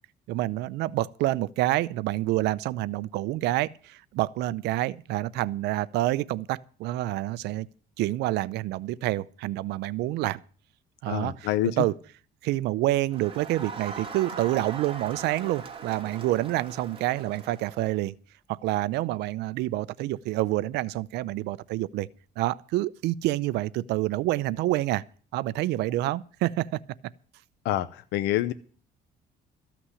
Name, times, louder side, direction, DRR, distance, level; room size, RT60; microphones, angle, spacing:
voice 1, 0.3-7.7 8.0-10.4 11.0-12.0 12.4-18.1 18.5-22.1 22.4-25.0 25.3-26.8, right 16 dB, 85° right, 0.6 m, -28 dB
voice 2, 11.1-11.8 27.6-28.5, left 14 dB, 90° left, 0.7 m, -27 dB
Crowd, 13.1-17.9, right 5 dB, 30° right, 2.8 m, -40 dB
14.5 x 6.0 x 9.7 m
cardioid pair, 110°, 17 cm